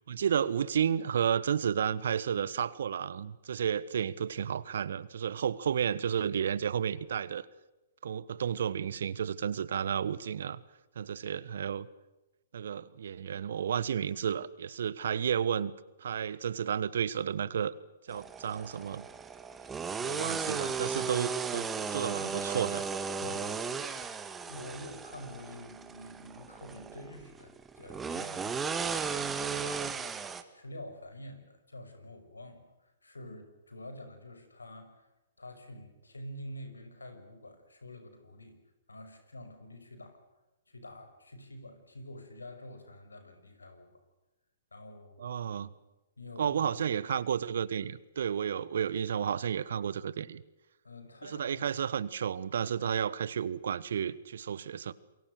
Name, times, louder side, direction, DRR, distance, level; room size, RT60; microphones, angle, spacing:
voice 1, 0.1-7.5 8.0-10.6 10.9-11.9 12.5-15.7 16.0-17.8 18.1-19.0 20.0-22.9 45.2-45.7 46.4-50.4 51.3-54.9, right 8 dB, 65° right, 18 dB, 1.4 m, -32 dB
sound 1, 18.1-30.4, right 5 dB, 15° right, 2.0 m, -36 dB
voice 2, 23.2-23.8 24.1-30.1 30.5-35.1 35.4-38.6 38.9-40.2 40.7-44.0 44.7-45.2 46.2-47.1 50.8-51.7, left 1 dB, 85° left, 8 dB, 5.9 m, -48 dB
28.0 x 23.0 x 6.7 m, 1.0 s
figure-of-eight pair, 120°, 0 cm